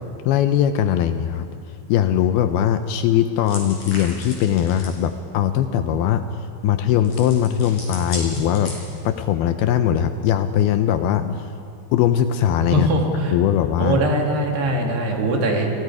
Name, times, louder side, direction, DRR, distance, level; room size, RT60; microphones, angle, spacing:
voice 1, 0.2-1.5 1.9-6.3 6.6-8.7 9.1-11.5 11.9-12.9 13.3-14.0, left 10 dB, 80° left, 9 dB, 2.4 m, -20 dB
sound 1, 3.5-5.0 7.0-9.2, left 2 dB, 45° left, 6.3 m, -34 dB
voice 2, 12.7-13.3 13.8-15.7, right 1 dB, 70° right, 0 dB, 4.7 m, -21 dB
30.0 x 22.5 x 4.9 m, 2.5 s
omnidirectional pair, 4.9 m